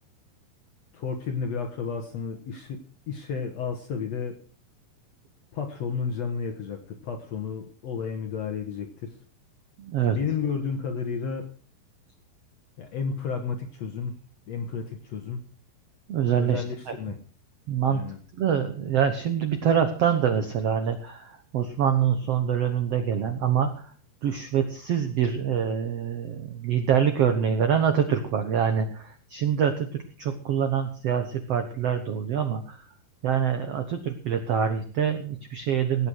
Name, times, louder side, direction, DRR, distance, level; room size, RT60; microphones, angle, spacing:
voice 1, 0.9-2.8 3.1-4.4 5.5-9.2 10.2-11.5 12.8-14.2 14.5-15.5 16.4-17.2 17.9-18.2, left 6 dB, 60° left, 5 dB, 1.9 m, -32 dB
voice 2, 9.8-10.2 16.1-16.9 17.7-23.9 24.2-32.9 33.2-36.1, right 8 dB, 80° right, 7 dB, 1.4 m, -25 dB
17.5 x 8.7 x 6.4 m, 0.43 s
omnidirectional pair, 4.6 m